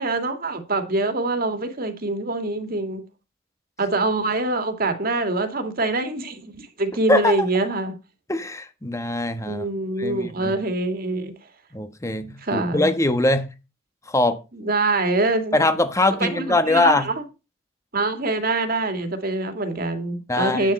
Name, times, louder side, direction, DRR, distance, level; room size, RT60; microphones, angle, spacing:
voice 1, 0.0-3.0 3.8-7.9 9.4-11.3 12.4-12.9 14.5-15.6 16.2-17.2 17.9-20.7, right 2 dB, 50° right, 2.3 m, -24 dB
voice 2, 8.3-9.7 10.0-10.5 11.7-13.5 14.1-14.4 15.5-17.1 20.3-20.7, left 2 dB, 15° left, 1.2 m, -22 dB
10.5 x 8.8 x 4.2 m
head